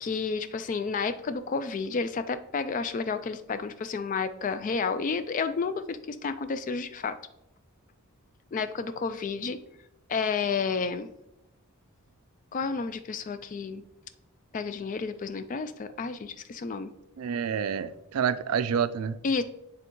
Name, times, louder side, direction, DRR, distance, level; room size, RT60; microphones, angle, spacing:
voice 1, 0.0-7.2 8.5-9.6 10.1-11.1 12.5-13.8 14.5-16.9 19.2-19.4, left 5 dB, 35° left, 0.3 m, -31 dB
voice 2, 17.2-19.2, right 7 dB, 80° right, 0.4 m, -28 dB
9.0 x 3.5 x 3.0 m
head